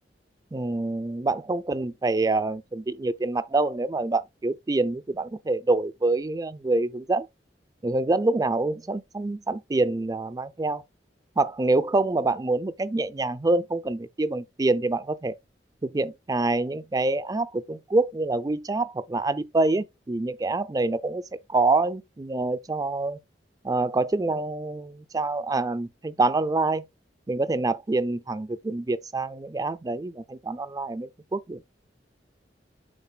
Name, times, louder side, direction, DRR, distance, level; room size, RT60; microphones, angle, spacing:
voice 1, 0.5-7.3 7.8-10.8 11.4-15.4 15.8-23.2 23.6-26.9 27.3-31.6, right 2 dB, 20° right, 0.4 m, -26 dB
11.0 x 3.9 x 2.3 m
head